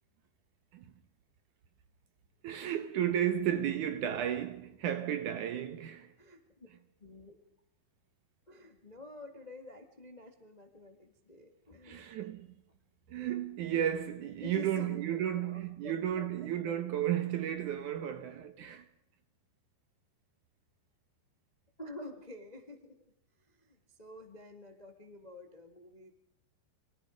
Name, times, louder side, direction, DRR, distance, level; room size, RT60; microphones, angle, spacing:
voice 1, 2.4-6.1 11.8-12.6 13.1-18.9, right 10 dB, 70° right, 1.9 m, -33 dB
voice 2, 6.0-6.7 7.0-7.4 8.5-12.2 13.7-13.8 14.4-16.3 16.6-16.8 21.8-23.0 23.4-26.1, left 2 dB, 80° left, 0.3 m, -49 dB
27.5 x 24.0 x 5.2 m
omnidirectional pair, 4.9 m